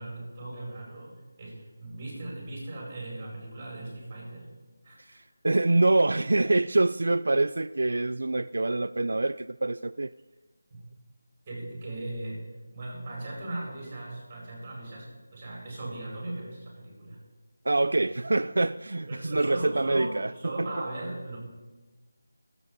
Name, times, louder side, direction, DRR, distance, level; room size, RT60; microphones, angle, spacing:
voice 1, 0.0-4.5 4.8-5.2 10.7-10.8 11.5-12.4 12.7-17.2 19.1-21.4, right 1 dB, 20° right, -4 dB, 5.3 m, -38 dB
voice 2, 5.0-10.1 17.6-20.3, right 2 dB, 70° right, 13 dB, 0.3 m, -25 dB
22.0 x 8.1 x 4.0 m, 1.2 s
figure-of-eight pair, 175°, 0 cm